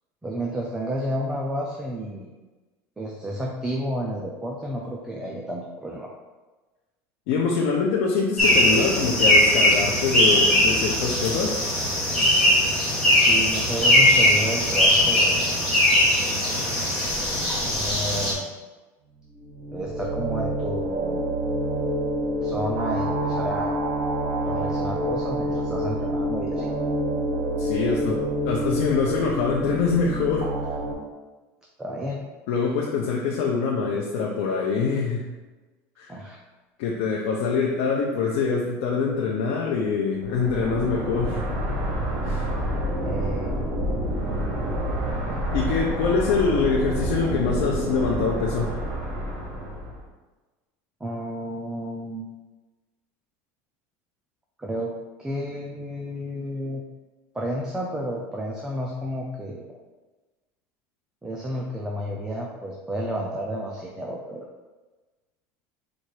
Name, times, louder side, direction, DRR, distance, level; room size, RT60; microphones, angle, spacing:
voice 1, 0.2-2.3 3.0-6.1 13.1-15.6 17.6-18.5 19.7-21.3 22.4-23.9 24.4-26.7 31.8-32.3 36.1-36.4 43.0-43.5 51.0-52.3 54.6-54.9 55.2-56.8 57.3-59.7 61.2-64.5, equal, 10° right, -1 dB, 0.4 m, -31 dB
voice 2, 7.3-11.6 27.6-30.5 32.5-35.3 36.0-36.1 36.8-41.4 42.2-42.5 45.5-48.8, left 5 dB, 75° left, -2 dB, 0.6 m, -24 dB
sound 1, 8.4-18.3, left 1 dB, 10° left, 1.2 m, -20 dB
sound 2, 19.4-30.9, right 1 dB, 85° right, 0.9 m, -27 dB
sound 3, 40.2-50.0, right 1 dB, 60° right, 1.3 m, -28 dB
4.2 x 2.5 x 4.7 m, 1.2 s
cardioid pair, 150°, 7 cm